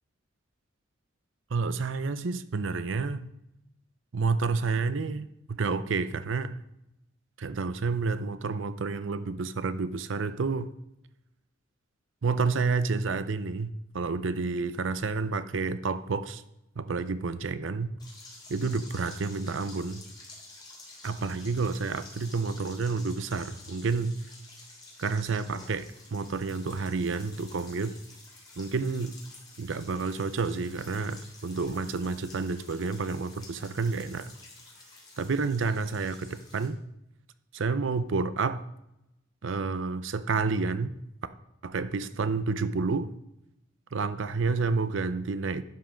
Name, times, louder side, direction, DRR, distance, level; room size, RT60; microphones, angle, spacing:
voice 1, 1.5-3.3 4.1-6.6 7.4-10.7 12.2-16.4 16.8-17.9 18.5-20.0 21.0-24.2 25.0-28.0 28.6-29.2 29.6-34.3 35.2-36.8 37.5-38.6 39.4-40.9 41.6-43.1 43.9-45.6, right 4 dB, 65° right, 13 dB, 0.6 m, -30 dB
sound 1, 18.0-36.7, left 2 dB, 20° left, 3.0 m, -50 dB
11.0 x 5.6 x 5.1 m, 0.86 s
head